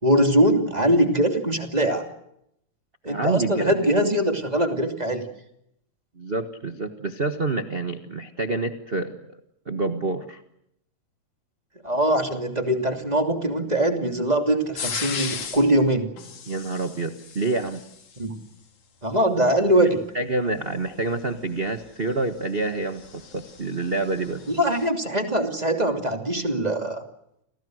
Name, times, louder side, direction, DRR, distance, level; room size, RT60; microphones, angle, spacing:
voice 1, 0.0-2.1 3.0-5.3 11.8-16.1 18.2-18.4 19.0-20.0 24.5-27.0, right 1 dB, 15° right, 5 dB, 2.6 m, -22 dB
voice 2, 3.1-3.7 6.2-9.1 9.7-10.4 16.5-17.8 20.1-24.4, right 3 dB, 35° right, 6 dB, 0.9 m, -27 dB
sound 1, 14.8-15.7 16.2-18.2 20.8-24.9, left 6 dB, 80° left, 4.2 m, -37 dB
30.0 x 25.0 x 6.5 m, 0.77 s
omnidirectional pair, 3.4 m